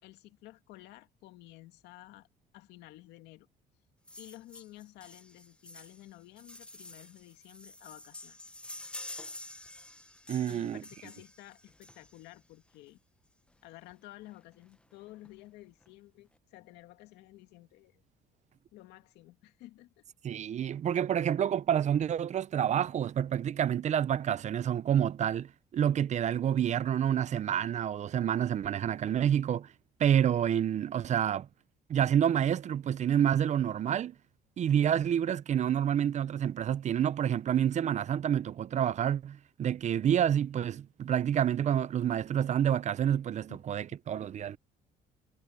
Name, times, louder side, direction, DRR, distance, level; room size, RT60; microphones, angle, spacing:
voice 1, 0.0-2.3 2.5-3.5 4.2-8.4 10.5-13.0 13.6-18.0 18.7-20.0 43.5-43.6, left 17 dB, 90° left, 2.2 m, -52 dB
sound 1, 4.1-12.4 13.5-13.6 13.9-14.0 14.2-14.4 14.7-15.3 15.8-15.9, left 1 dB, 5° left, 1.3 m, -48 dB
voice 2, 10.3-10.8 20.2-29.7 30.0-31.5 31.9-34.1 34.6-44.6, right 9 dB, 45° right, 0.6 m, -28 dB
cardioid pair, 110°, 17 cm